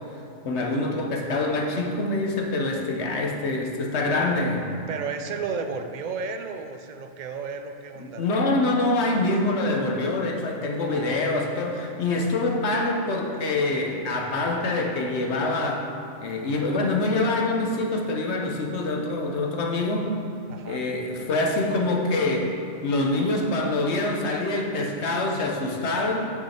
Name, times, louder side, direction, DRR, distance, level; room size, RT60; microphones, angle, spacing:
voice 1, 0.4-4.7 8.2-15.9 16.2-20.1 20.6-22.5 22.8-26.2, left 2 dB, 65° left, 1 dB, 1.1 m, -25 dB
voice 2, 4.9-8.2 10.8-11.4 20.5-20.8, right 5 dB, 60° right, 7 dB, 0.5 m, -33 dB
8.4 x 6.2 x 4.3 m, 2.7 s
omnidirectional pair, 1.2 m